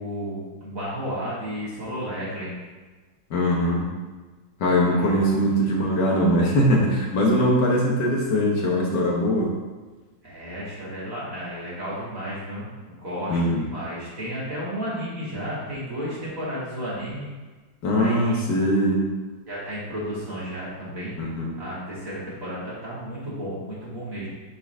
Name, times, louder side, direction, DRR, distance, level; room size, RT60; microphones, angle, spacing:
voice 1, 0.0-2.5 4.9-5.3 10.2-17.3 18.0-18.4 19.5-21.2 21.6-24.3, equal, 45° right, -8 dB, 2.6 m, -33 dB
voice 2, 3.3-3.9 4.6-9.5 13.3-13.6 17.8-19.0 21.2-21.5, equal, 65° left, -2 dB, 1.7 m, -21 dB
9.5 x 4.1 x 3.5 m, 1.3 s
omnidirectional pair, 2.1 m